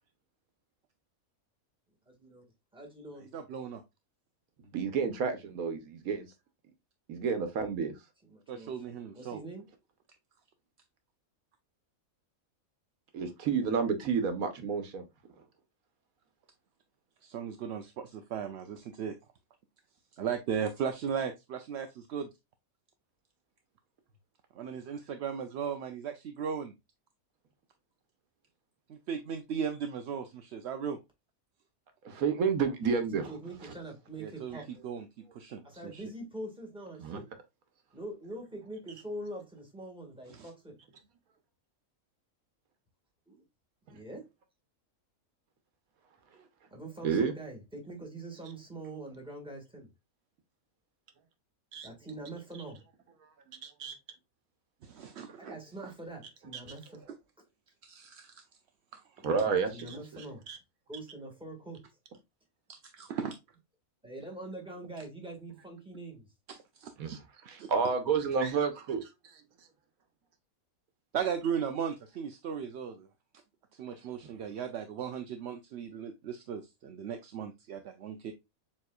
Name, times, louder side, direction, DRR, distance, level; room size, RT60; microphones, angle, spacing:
voice 1, 2.1-2.5 2.7-3.4 8.2-8.7 9.1-9.6 33.1-34.7 35.6-37.3 37.9-40.8 43.3-43.4 43.9-44.3 46.7-49.9 51.8-52.8 55.4-57.1 59.2-60.5 60.9-61.9 63.0-63.1 64.0-66.3, right 1 dB, 5° right, 1.7 m, -44 dB
voice 2, 3.3-3.8 8.5-9.4 17.2-19.2 20.1-22.3 24.6-26.7 28.9-31.0 34.2-34.6 34.8-35.0 35.3-35.6 35.9-36.0 40.4-40.5 54.8-55.6 57.8-58.4 58.9-59.0 62.7-63.4 66.5-66.9 67.6-67.7 71.1-73.1 73.8-78.3, right 7 dB, 65° right, 0.7 m, -37 dB
voice 3, 4.7-6.3 7.1-7.9 13.1-15.0 32.0-33.3 37.0-37.2 47.0-47.3 51.7-51.9 53.6-53.9 59.2-60.2 60.5-60.6 67.0-69.4 74.2-74.3, right 5 dB, 90° right, 1.4 m, -30 dB
7.2 x 3.1 x 2.3 m
omnidirectional pair, 1.5 m